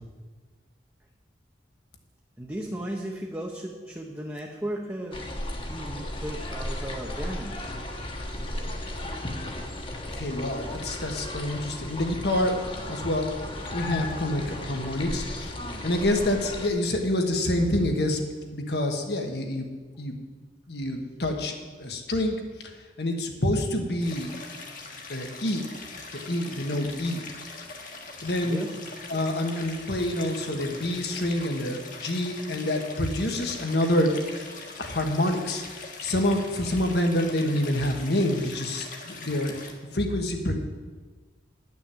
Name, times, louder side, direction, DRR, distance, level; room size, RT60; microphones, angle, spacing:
voice 1, 2.4-5.3 5.7-7.7 9.2-9.3 28.4-28.8, right 1 dB, 15° right, -1 dB, 0.9 m, -35 dB
sound 1, 5.1-16.7, left 1 dB, 30° left, 1.2 m, -35 dB
voice 2, 10.1-12.5 12.9-13.3 13.7-18.2 18.5-19.7 20.0-20.1 20.7-22.4 23.0-24.3 25.1-25.6 26.1-27.2 28.2-28.6 29.1-34.1 34.8-40.5, left 1 dB, 65° left, 3 dB, 1.5 m, -27 dB
Stream, 24.0-39.7, left 3 dB, 50° left, 1.5 m, -42 dB
10.5 x 6.2 x 8.6 m, 1.4 s
head